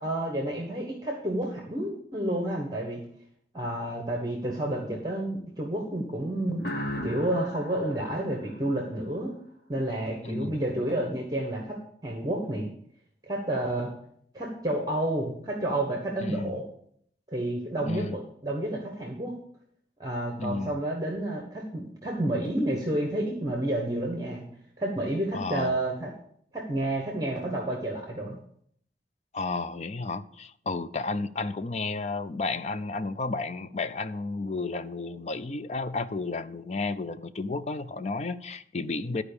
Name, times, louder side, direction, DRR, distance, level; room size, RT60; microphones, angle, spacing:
voice 1, 0.0-3.0 3.5-6.6 7.0-9.4 9.7-12.7 13.3-13.9 14.3-16.6 17.3-19.3 20.0-24.4 24.8-26.1 26.5-28.4, right 1 dB, 20° right, 1.2 m, -30 dB
sound 1, 6.6-9.3, equal, 60° left, 1.2 m, -37 dB
voice 2, 10.2-10.6 16.2-16.6 17.8-18.2 20.4-20.8 25.3-25.8 29.3-39.2, left 3 dB, 40° left, 0.5 m, -32 dB
11.5 x 4.9 x 6.9 m
head